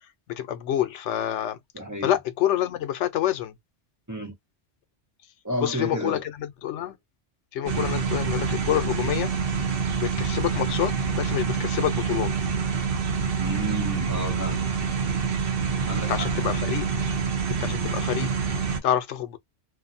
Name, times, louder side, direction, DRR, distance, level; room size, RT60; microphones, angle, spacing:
voice 1, 0.3-1.6 2.0-3.5 5.6-6.2 6.6-7.0 7.5-9.3 10.0-12.3 16.1-16.9 17.6-18.3 18.8-19.4, left 11 dB, 90° left, 0.9 m, -27 dB
voice 2, 1.7-2.1 4.1-4.3 5.4-6.2 13.4-14.7 15.9-16.6, right 1 dB, 20° right, 0.8 m, -32 dB
sound 1, 7.7-18.8, right 6 dB, 60° right, 0.9 m, -26 dB
2.5 x 2.1 x 2.6 m
omnidirectional pair, 1.2 m